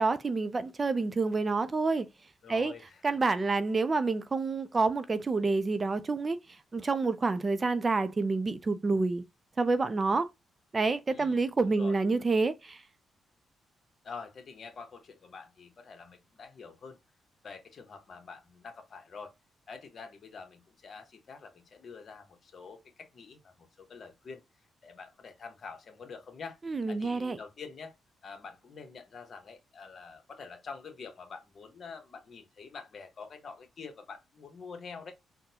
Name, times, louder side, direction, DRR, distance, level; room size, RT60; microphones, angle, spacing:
voice 1, 0.0-2.1 2.5-2.7 3.0-6.4 6.7-9.2 9.6-10.3 10.7-12.8 26.7-27.4, right 3 dB, 35° right, 0.5 m, -28 dB
voice 2, 2.4-3.2 11.1-12.0 14.0-17.0 17.4-19.3 19.7-24.4 24.8-26.6 26.9-27.9 28.2-35.1, left 5 dB, 55° left, 1.1 m, -46 dB
3.7 x 2.2 x 2.8 m
cardioid pair, 80°, 0 cm